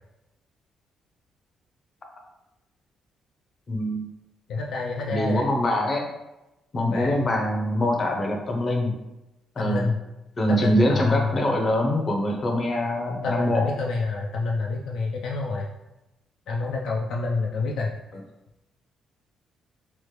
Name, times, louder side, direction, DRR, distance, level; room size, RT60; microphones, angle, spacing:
voice 1, 3.7-4.1 5.1-6.1 6.7-8.9 9.6-9.9 10.4-13.6, left 1 dB, 40° left, 1 dB, 0.6 m, -24 dB
voice 2, 4.5-5.4 6.8-7.2 9.6-10.0 10.5-11.4 13.2-15.7 16.5-18.0, left 3 dB, 80° left, -1 dB, 0.3 m, -27 dB
3.0 x 2.0 x 3.1 m, 0.96 s
cardioid pair, 85°, 0 cm